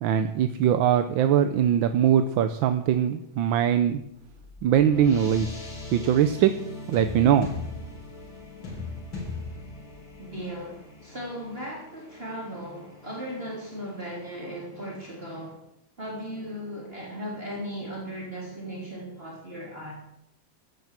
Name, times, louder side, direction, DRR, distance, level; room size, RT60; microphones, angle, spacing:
voice 1, 0.0-4.0 4.6-5.5 5.9-6.5 6.9-7.5, right 9 dB, 90° right, 9 dB, 1.5 m, -21 dB
sound 1, 3.9-14.6, left 3 dB, 80° left, 4.7 m, -40 dB
voice 2, 10.2-15.6 16.0-19.9, equal, 30° right, -4 dB, 3.7 m, -37 dB
15.5 x 9.4 x 7.4 m, 0.81 s
omnidirectional pair, 2.1 m